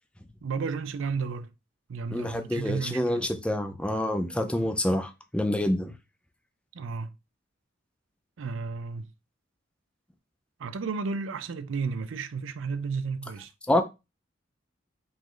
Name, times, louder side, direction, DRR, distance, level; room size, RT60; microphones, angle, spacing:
voice 1, 0.4-1.5 1.9-3.2 6.7-7.1 8.4-9.1 10.6-13.5, right 5 dB, 75° right, 0.5 m, -32 dB
voice 2, 2.1-5.9 13.7-13.8, left 1 dB, 5° left, 0.4 m, -27 dB
5.0 x 2.5 x 3.8 m
head